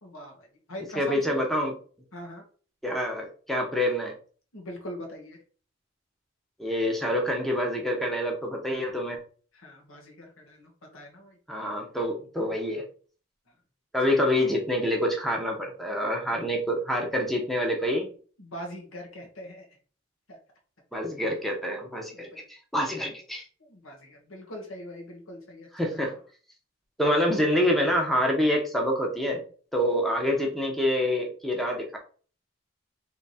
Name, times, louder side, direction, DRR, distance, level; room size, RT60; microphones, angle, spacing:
voice 1, 0.0-1.4 2.1-2.4 4.5-5.4 9.5-11.4 14.1-14.2 16.3-16.4 18.4-19.7 20.3-20.4 22.1-22.4 23.6-26.1, equal, 80° left, 1 dB, 1.5 m, -42 dB
voice 2, 1.0-1.7 2.8-4.1 6.6-9.2 11.5-12.8 13.9-18.1 20.9-23.4 25.7-26.2 27.0-29.4 29.7-32.0, equal, ahead, 0 dB, 0.8 m, -26 dB
3.6 x 3.2 x 4.1 m, 0.41 s
head